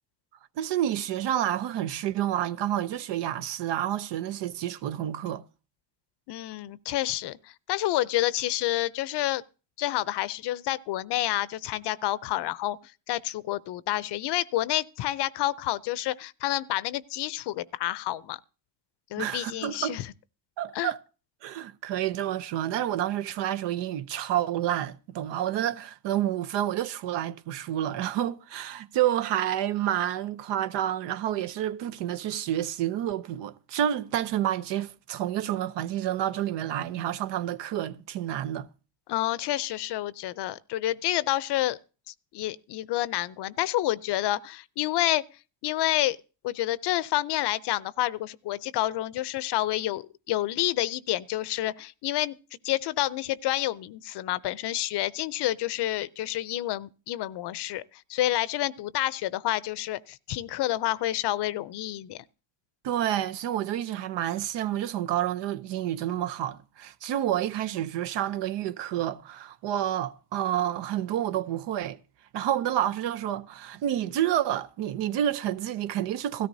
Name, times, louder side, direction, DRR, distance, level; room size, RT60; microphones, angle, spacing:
voice 1, 0.6-5.4 19.2-20.0 20.6-21.0 21.4-38.7 62.8-72.0 72.3-76.5, right 11 dB, 80° right, 0.7 m, -29 dB
voice 2, 6.3-9.4 9.8-18.4 19.1-20.1 20.7-20.9 39.1-41.8 42.1-45.2 45.6-46.2 46.4-52.4 52.6-62.2, left 15 dB, 70° left, 0.6 m, -29 dB
16.5 x 13.5 x 2.7 m
cardioid pair, 90°, 42 cm